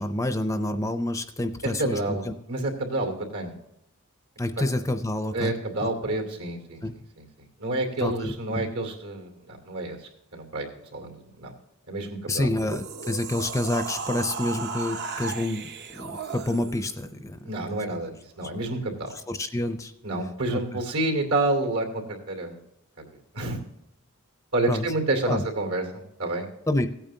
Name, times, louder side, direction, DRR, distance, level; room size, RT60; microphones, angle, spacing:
voice 1, 0.0-2.3 4.4-5.5 5.8-5.9 6.8-6.9 8.0-8.7 12.3-17.4 17.7-17.8 19.3-19.9 20.5-20.8 24.7-24.9 25.3-25.4 26.7-26.9, left 1 dB, 15° left, 9 dB, 0.5 m, -28 dB
voice 2, 1.6-3.5 5.3-6.8 7.2-10.0 10.3-10.7 10.9-11.5 11.9-12.5 17.4-18.1 18.4-19.1 20.0-22.6 23.3-23.6 24.5-26.5, right 2 dB, 75° right, 4 dB, 2.7 m, -29 dB
sound 1, 12.4-17.0, right 5 dB, 50° right, 0.7 m, -35 dB
16.5 x 8.9 x 2.8 m, 0.82 s
head